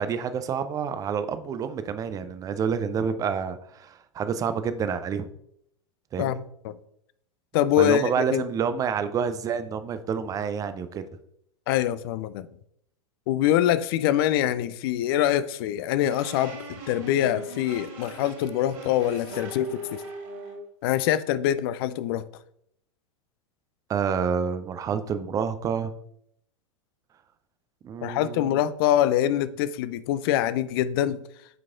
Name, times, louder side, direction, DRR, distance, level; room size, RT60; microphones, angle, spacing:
voice 1, 0.0-5.3 6.1-6.4 7.8-11.0 23.9-25.9 27.8-28.6, right 6 dB, 20° right, 0.5 m, -28 dB
voice 2, 7.5-8.4 11.7-12.5 13.3-16.6 16.9-20.0 20.8-22.2 28.0-31.2, left 11 dB, 45° left, 0.4 m, -24 dB
sound 1, 16.1-20.6, equal, 50° right, 2.5 m, -40 dB
9.1 x 4.6 x 2.5 m
figure-of-eight pair, 95°, 17 cm